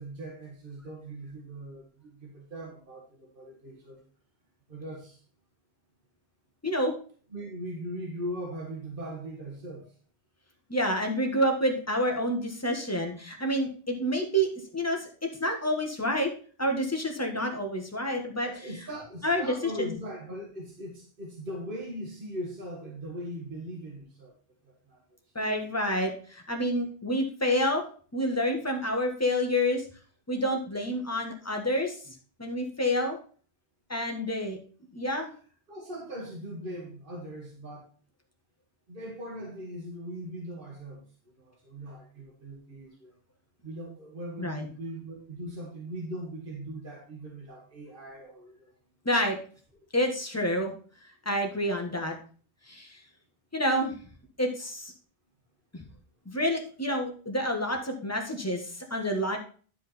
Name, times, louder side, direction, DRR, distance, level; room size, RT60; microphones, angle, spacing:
voice 1, 0.0-4.0 4.7-5.2 7.3-9.9 18.4-24.3 24.6-25.0 35.7-37.9 38.9-43.1 43.6-48.7, right 1 dB, 55° right, -1 dB, 2.1 m, -40 dB
voice 2, 10.7-15.1 15.4-16.3 16.6-18.5 19.2-19.9 25.3-27.8 28.1-29.8 30.3-33.2 33.9-34.6 34.9-35.3 44.4-44.6 49.0-49.4 49.9-50.7 51.2-52.1 52.7-53.0 53.5-53.9 54.4-54.9 55.7-55.8 56.2-59.4, equal, 15° left, 2 dB, 1.4 m, -28 dB
10.5 x 5.0 x 4.3 m, 0.42 s
omnidirectional pair, 1.1 m